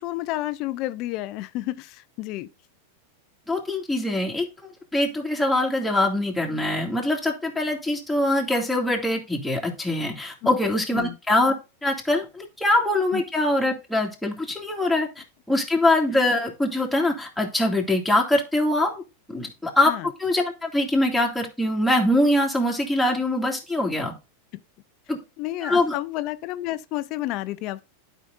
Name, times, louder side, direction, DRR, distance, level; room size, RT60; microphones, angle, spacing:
voice 1, 0.0-2.5 10.9-11.2 13.1-13.2 19.8-20.1 25.4-27.9, left 16 dB, 50° left, 0.5 m, -30 dB
voice 2, 3.5-4.5 4.9-11.5 11.8-19.0 19.3-19.9 20.2-24.1 25.1-25.2 25.6-26.0, left 1 dB, ahead, 2.4 m, -23 dB
12.0 x 5.2 x 2.6 m
hypercardioid pair, 105°, 0 cm